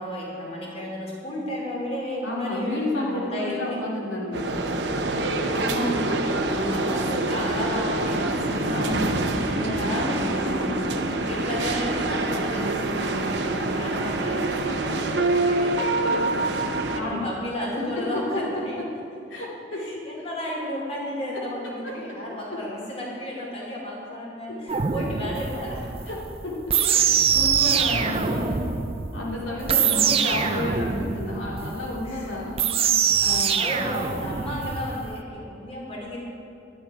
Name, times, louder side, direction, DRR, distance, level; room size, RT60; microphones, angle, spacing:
voice 1, 0.0-3.8 5.5-9.1 9.5-10.5 11.1-18.8 19.7-25.9 26.7-27.0 27.8-28.6 29.4-30.5 31.0-31.1 32.0-32.3 33.5-36.2, equal, 35° left, -4 dB, 2.8 m, -33 dB
voice 2, 2.2-4.5 6.4-6.9 8.7-10.9 16.9-17.3 17.8-18.4 19.3-19.8 20.2-20.3 22.5-22.6 24.5-24.8 26.1-26.2 26.4-26.5 27.0-28.6 29.1-32.6 33.2-33.6, left 1 dB, 85° left, -4 dB, 2.7 m, -31 dB
sound 1, 4.3-17.0, right 2 dB, 60° right, 0.8 m, -26 dB
sound 2, 24.7-35.1, right 7 dB, 30° right, 0.5 m, -24 dB
11.5 x 10.5 x 4.8 m, 2.7 s
head